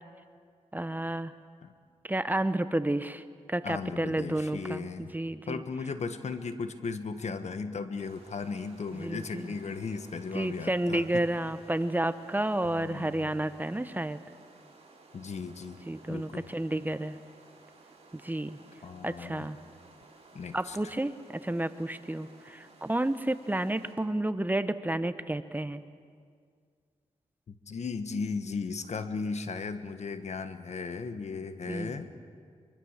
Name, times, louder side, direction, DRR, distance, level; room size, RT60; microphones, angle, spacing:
voice 1, 0.7-1.3 2.0-3.2 3.5-5.6 9.0-9.6 10.3-14.2 15.9-17.2 18.1-18.6 19.0-19.6 20.5-25.8 31.7-32.0, right 1 dB, 15° right, 11 dB, 0.9 m, -31 dB
voice 2, 3.6-5.1 5.5-11.2 12.8-13.3 15.1-15.8 16.1-16.4 18.8-19.5 20.3-20.8 27.5-32.1, left 4 dB, 65° left, 9 dB, 1.5 m, -36 dB
sound 1, 8.0-23.9, right 3 dB, 55° right, 4.9 m, -56 dB
23.5 x 23.5 x 7.4 m, 2.1 s
cardioid pair, 75°, 12 cm